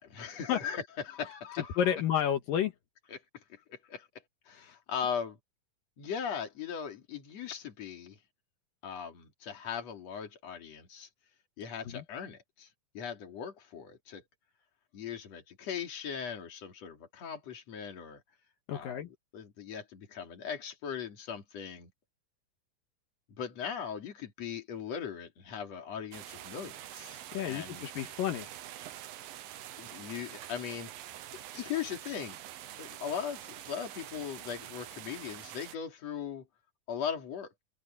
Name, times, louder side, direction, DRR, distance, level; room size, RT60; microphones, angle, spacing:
voice 1, 0.0-1.8 3.1-4.1 4.5-5.4 6.0-8.2 8.8-11.1 11.6-12.7 12.9-14.2 14.9-18.2 18.7-19.1 19.3-21.9 23.4-27.9 29.8-30.9 31.5-32.4 32.8-36.5 36.9-37.5, left 7 dB, 50° left, 3.7 m, -39 dB
voice 2, 1.5-2.7 4.6-4.7 11.9-12.0 18.7-19.1 27.3-28.5, left 9 dB, 75° left, 3.1 m, -31 dB
sound 1, 26.1-35.8, right 12 dB, 80° right, 3.0 m, -46 dB
omnidirectional pair, 4.1 m